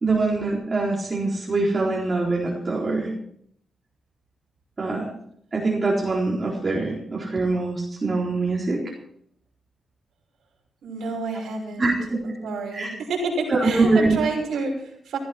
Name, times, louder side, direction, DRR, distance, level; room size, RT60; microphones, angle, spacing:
voice 1, 0.0-3.1 4.8-5.1 5.5-8.8 11.8-12.0 12.7-12.9 13.5-14.1, right 3 dB, 35° right, -3 dB, 4.1 m, -23 dB
voice 2, 10.8-12.0 12.2-15.2, right 3 dB, 85° right, -1 dB, 6.1 m, -29 dB
17.0 x 14.0 x 4.5 m, 0.68 s
cardioid pair, 75°, 0 cm